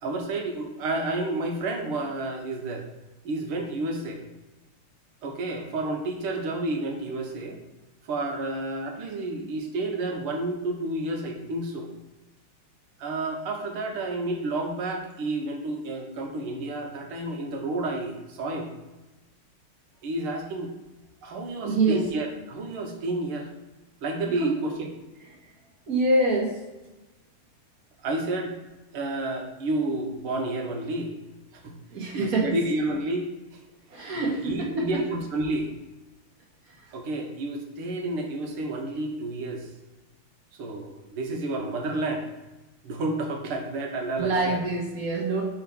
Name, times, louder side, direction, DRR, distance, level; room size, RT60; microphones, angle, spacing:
voice 1, 0.0-2.9 3.2-4.2 5.2-7.6 8.0-11.9 13.0-18.7 20.0-20.7 21.2-23.5 24.0-24.9 28.0-28.5 28.9-31.1 31.6-31.7 32.1-33.3 34.1-35.7 36.9-39.7 40.6-42.3 42.8-44.6, right 2 dB, 85° right, 2 dB, 1.9 m, -30 dB
voice 2, 21.6-22.0 24.4-24.5 25.9-26.5 31.9-32.6 33.9-34.7 44.2-45.4, right 2 dB, 50° right, -1 dB, 1.5 m, -25 dB
4.8 x 4.2 x 5.3 m, 1.1 s
omnidirectional pair, 2.4 m